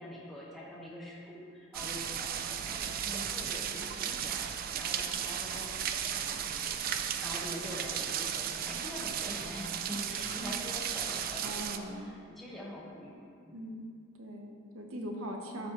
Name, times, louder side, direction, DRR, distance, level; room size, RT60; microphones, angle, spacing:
voice 1, 0.0-5.9 6.2-13.6, equal, ahead, -6 dB, 1.0 m, -45 dB
sound 1, 1.7-11.8, right 8 dB, 45° right, 0.3 m, -35 dB
voice 2, 11.4-12.1 13.5-13.9 14.2-15.7, equal, 85° right, 2 dB, 0.9 m, -40 dB
12.0 x 4.2 x 2.9 m, 2.3 s
head